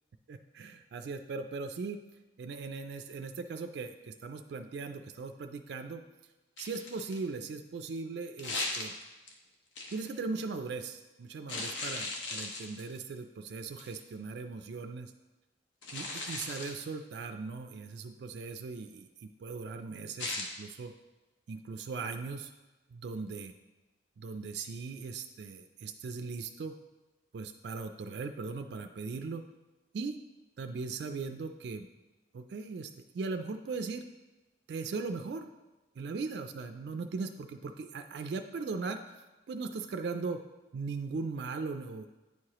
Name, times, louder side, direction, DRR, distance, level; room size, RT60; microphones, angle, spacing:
voice 1, 0.3-2.0 2.4-6.0 6.6-8.9 9.9-15.1 15.9-20.9 21.5-22.5 22.9-23.5 24.2-26.7 27.3-29.4 29.9-30.2 30.6-31.9 32.3-34.0 34.7-35.5 36.0-39.2 39.5-40.4 40.7-42.1, right 4 dB, 60° right, 7 dB, 0.3 m, -39 dB
sound 1, 6.6-7.3 8.4-9.3 9.8-10.1 11.5-13.0 13.8-14.0 15.8-16.8 20.2-20.5, left 3 dB, 75° left, 0.9 m, -37 dB
9.3 x 4.8 x 2.9 m, 1.1 s
head